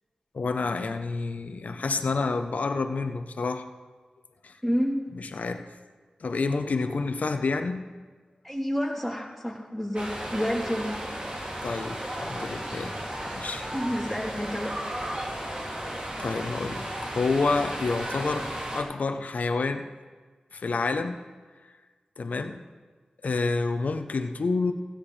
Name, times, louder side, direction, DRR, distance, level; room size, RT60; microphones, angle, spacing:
voice 1, 0.3-3.7 4.4-4.6 5.1-5.7 6.2-7.9 11.6-13.0 13.3-13.6 16.2-19.9 20.5-21.2 22.2-22.6 23.2-24.7, left 3 dB, 70° left, 7 dB, 0.8 m, -29 dB
voice 2, 4.6-5.0 8.4-11.0 13.7-14.7, equal, ahead, -4 dB, 3.3 m, -29 dB
sound 1, 9.9-18.8, right 1 dB, 40° right, 2.6 m, -34 dB
16.0 x 11.5 x 3.3 m, 1.4 s
cardioid pair, 45°, 3 cm